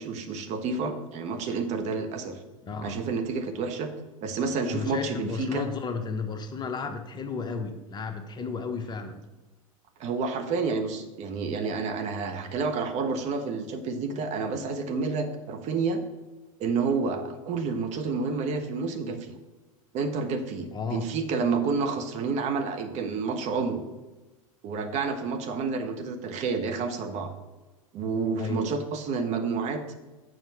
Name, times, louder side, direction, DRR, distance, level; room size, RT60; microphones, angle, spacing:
voice 1, 0.0-2.4 2.8-3.9 4.2-5.7 10.0-16.0 16.6-19.3 19.9-23.8 24.6-27.3 27.9-30.0, right 4 dB, 40° right, 6 dB, 1.2 m, -29 dB
voice 2, 2.6-3.0 4.7-9.2 20.7-21.0 28.4-28.7, left 4 dB, 25° left, 6 dB, 1.0 m, -33 dB
7.5 x 5.7 x 7.0 m, 1.2 s
figure-of-eight pair, 85°, 18 cm